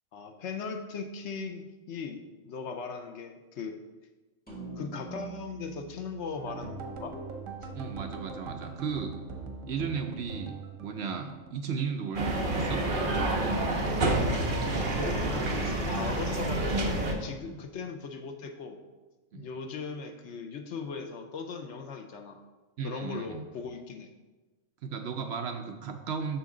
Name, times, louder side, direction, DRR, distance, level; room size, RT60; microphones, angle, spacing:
voice 1, 0.1-3.8 4.7-7.2 14.8-18.8 19.3-22.4 22.8-24.1, left 5 dB, 65° left, 5 dB, 0.9 m, -39 dB
sound 1, 4.5-8.9, right 3 dB, 5° left, 1.4 m, -46 dB
sound 2, 6.4-12.5 12.8-13.8 14.1-14.5 14.8-15.0, right 4 dB, 85° right, 1.2 m, -42 dB
voice 2, 7.7-9.1 9.7-12.8 17.4-17.6 19.3-19.5 22.8-23.4 24.8-26.4, right 6 dB, 65° right, 5 dB, 0.8 m, -35 dB
sound 3, 12.1-17.1, right 2 dB, 45° right, 1.1 m, -28 dB
7.0 x 6.4 x 3.7 m, 1.2 s
omnidirectional pair, 1.4 m